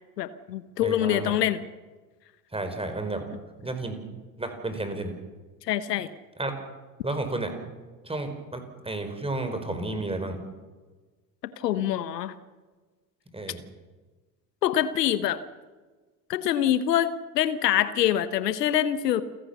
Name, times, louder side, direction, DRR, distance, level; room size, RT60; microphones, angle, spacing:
voice 1, 0.2-1.6 5.7-6.1 11.4-12.3 14.6-15.4 16.3-19.2, left 11 dB, 75° left, 14 dB, 1.2 m, -25 dB
voice 2, 0.8-1.4 2.5-3.2 3.6-4.0 4.4-5.1 6.4-6.5 7.0-7.5 8.0-10.4 13.3-13.6, right 2 dB, 10° right, 7 dB, 4.9 m, -32 dB
28.5 x 16.5 x 6.9 m, 1.3 s
figure-of-eight pair, 70°, 49 cm